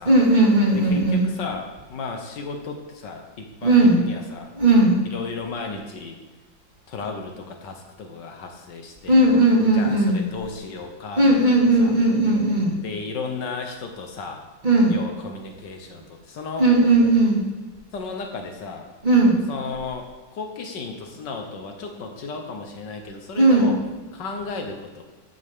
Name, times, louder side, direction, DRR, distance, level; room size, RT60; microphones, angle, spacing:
voice 1, 0.1-1.3 3.6-4.0 4.5-5.1 9.1-10.2 11.2-12.8 14.6-14.9 16.6-17.5 19.0-19.4 23.4-23.7, right 2 dB, 25° right, -3 dB, 2.1 m, -17 dB
voice 2, 0.7-4.5 5.1-6.2 6.9-9.2 9.7-11.4 11.8-11.9 12.8-14.4 14.9-16.7 17.9-18.9 19.5-23.8 24.1-25.0, left 4 dB, 65° left, 4 dB, 1.7 m, -34 dB
11.5 x 8.3 x 3.7 m, 1.3 s
omnidirectional pair, 2.1 m